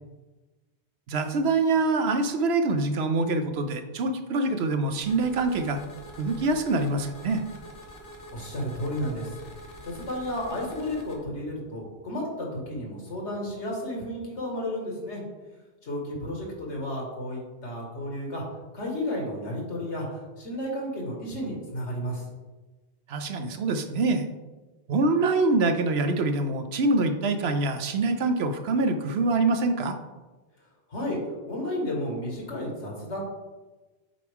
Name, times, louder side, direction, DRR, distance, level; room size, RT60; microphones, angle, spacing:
voice 1, 1.1-5.8 6.2-7.4 23.1-24.3 24.9-30.0, right 3 dB, 70° right, 8 dB, 0.9 m, -25 dB
sound 1, 4.9-11.2, left 1 dB, 55° left, 1.2 m, -45 dB
voice 2, 8.3-9.3 9.8-15.2 15.8-18.4 18.7-22.2 30.9-31.2 31.5-33.2, left 1 dB, 85° left, -2 dB, 2.1 m, -32 dB
7.6 x 4.6 x 3.5 m, 1.2 s
omnidirectional pair, 1.1 m